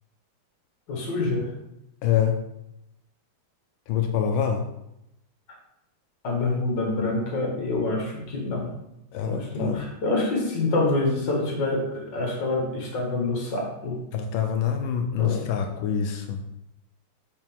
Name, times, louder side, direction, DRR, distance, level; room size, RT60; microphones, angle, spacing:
voice 1, 0.9-1.5 6.2-8.7 9.2-14.0 15.2-15.5, left 2 dB, 55° left, 0 dB, 2.0 m, -26 dB
voice 2, 2.0-2.4 3.9-4.7 9.1-9.8 14.1-16.4, left 8 dB, 75° left, 5 dB, 1.3 m, -25 dB
5.8 x 5.2 x 3.6 m, 0.84 s
omnidirectional pair, 2.4 m